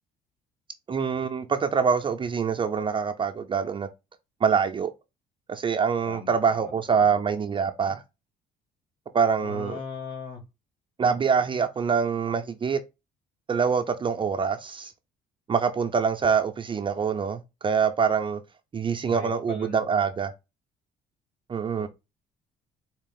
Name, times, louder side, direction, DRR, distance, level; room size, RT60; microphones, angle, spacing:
voice 1, 0.9-3.9 4.4-4.9 5.5-8.0 9.1-9.8 11.0-12.8 13.5-14.9 15.5-18.4 18.7-20.3 21.5-21.9, right 6 dB, 30° right, 0.5 m, -25 dB
voice 2, 6.1-6.7 7.0-7.1 9.4-10.4 19.0-19.8 21.7-21.9, left 5 dB, 55° left, 2.4 m, -39 dB
4.3 x 2.4 x 3.7 m
cardioid pair, 110°, 17 cm